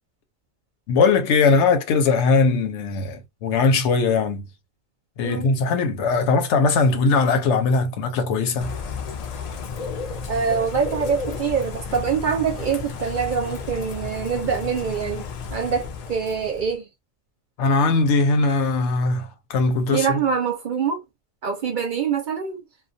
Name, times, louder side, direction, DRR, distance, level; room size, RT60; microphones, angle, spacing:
voice 1, 0.9-4.5 5.2-8.7 17.6-20.2, left 4 dB, 85° left, 0.9 m, -20 dB
Bird / Rain, 8.6-16.8, left 5 dB, 55° left, 0.4 m, -33 dB
voice 2, 10.3-15.2 15.5-16.8 19.9-21.0 21.4-22.6, right 6 dB, 55° right, 0.6 m, -24 dB
2.2 x 2.2 x 2.5 m
omnidirectional pair, 1.2 m